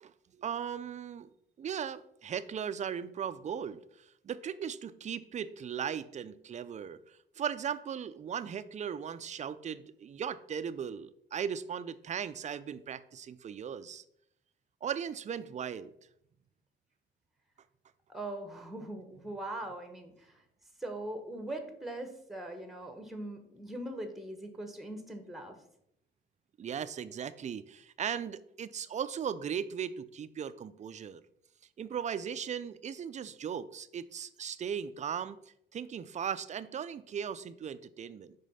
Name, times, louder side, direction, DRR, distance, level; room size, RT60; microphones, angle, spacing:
voice 1, 0.0-1.3 1.6-14.0 14.8-15.9 26.6-31.2 31.8-35.4 35.7-38.3, right 8 dB, 35° right, 15 dB, 0.4 m, -38 dB
voice 2, 18.1-20.4 20.8-25.6, right 1 dB, ahead, 6 dB, 1.1 m, -41 dB
5.1 x 3.7 x 5.5 m, 0.74 s
cardioid pair, 90°, 20 cm